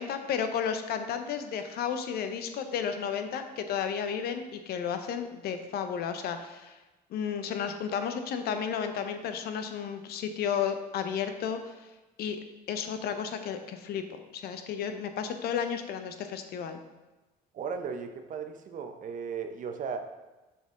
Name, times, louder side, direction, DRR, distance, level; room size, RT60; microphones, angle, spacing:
voice 1, 0.0-6.8 7.1-11.7 12.2-12.4 12.7-14.0 14.3-16.8, left 7 dB, 70° left, 8 dB, 0.7 m, -33 dB
voice 2, 17.5-20.1, right 6 dB, 50° right, 7 dB, 0.7 m, -36 dB
6.7 x 4.3 x 3.7 m, 1.1 s
cardioid pair, 110°, 17 cm